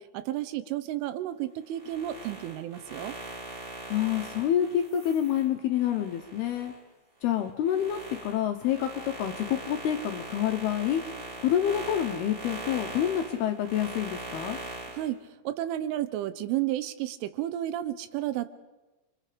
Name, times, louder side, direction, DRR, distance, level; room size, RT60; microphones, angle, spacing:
voice 1, 0.0-3.2 14.9-18.5, right 13 dB, 90° right, 12 dB, 3.5 m, -32 dB
sound 1, 1.7-6.8 7.2-15.1, right 2 dB, 20° right, 1.7 m, -41 dB
voice 2, 3.9-6.7 7.2-11.0 11.4-14.6, left 10 dB, 75° left, 5 dB, 2.5 m, -28 dB
28.5 x 24.5 x 5.1 m, 1.1 s
omnidirectional pair, 5.5 m